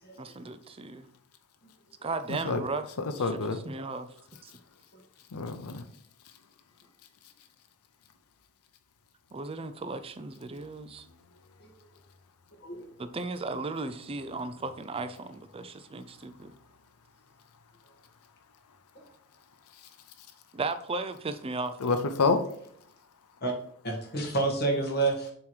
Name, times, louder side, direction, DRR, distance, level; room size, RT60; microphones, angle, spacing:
voice 1, 0.2-1.1 2.0-2.9 3.2-4.1 4.4-4.5 9.3-11.1 13.0-16.6 20.5-22.0, right 3 dB, 25° right, 0.4 m, -36 dB
voice 2, 2.3-2.6 3.0-3.6 5.3-5.8 21.8-22.5, left 4 dB, 85° left, 0.6 m, -27 dB
voice 3, 12.6-12.9 18.9-19.0 23.4-23.5 23.8-25.3, right 3 dB, 45° left, 1.5 m, -29 dB
7.1 x 3.0 x 4.9 m
head